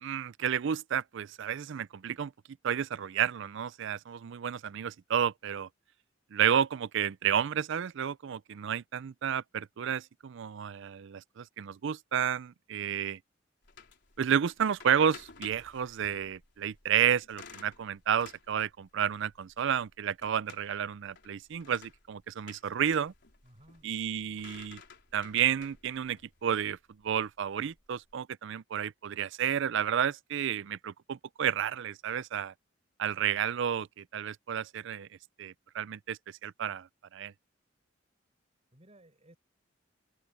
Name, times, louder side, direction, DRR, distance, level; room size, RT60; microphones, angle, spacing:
voice 1, 0.0-2.3 2.6-5.7 6.3-13.2 14.2-23.1 23.8-24.8 25.1-26.8 27.0-32.5 33.0-35.1 35.4-36.9 37.1-37.3, right 8 dB, 65° right, 0.4 m, -31 dB
sound 1, 13.6-28.1, left 5 dB, 60° left, 4.1 m, -55 dB
voice 2, 23.4-23.9 24.3-24.4 38.7-39.4, right 1 dB, 35° right, 6.4 m, -58 dB
open air
head